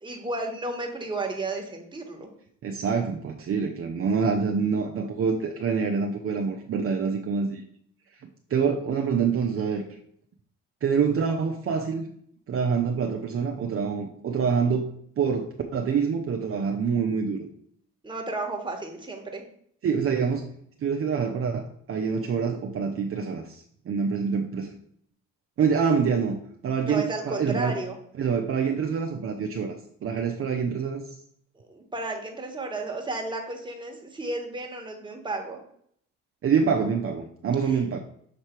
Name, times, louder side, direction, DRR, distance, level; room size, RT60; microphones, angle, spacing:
voice 1, 0.0-2.3 18.0-19.4 26.9-28.0 31.5-35.6 37.7-37.8, right 2 dB, 15° right, 1 dB, 1.4 m, -33 dB
voice 2, 2.6-7.6 8.5-9.8 10.8-12.1 12.5-14.9 15.2-17.5 19.8-20.5 20.8-24.7 25.6-27.8 28.2-29.8 30.0-31.0 36.4-38.0, right 6 dB, 45° right, 3 dB, 0.7 m, -26 dB
6.7 x 3.3 x 4.4 m, 0.66 s
cardioid pair, 90°, 30 cm